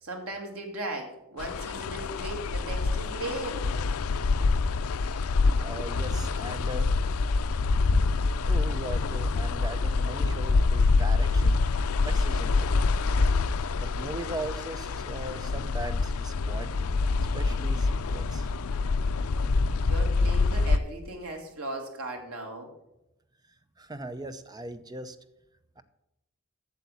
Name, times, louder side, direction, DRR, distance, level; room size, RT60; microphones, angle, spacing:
voice 1, 0.0-3.7 19.8-22.7, right 2 dB, 80° right, 2 dB, 2.3 m, -37 dB
sound 1, 1.4-20.8, left 3 dB, 80° left, 0.5 m, -26 dB
voice 2, 5.6-6.9 8.2-11.6 12.0-12.9 13.8-16.7 17.3-18.5 23.8-25.2 25.8-25.9, right 1 dB, 20° right, 11 dB, 0.6 m, -39 dB
8.4 x 7.1 x 8.2 m, 0.88 s
head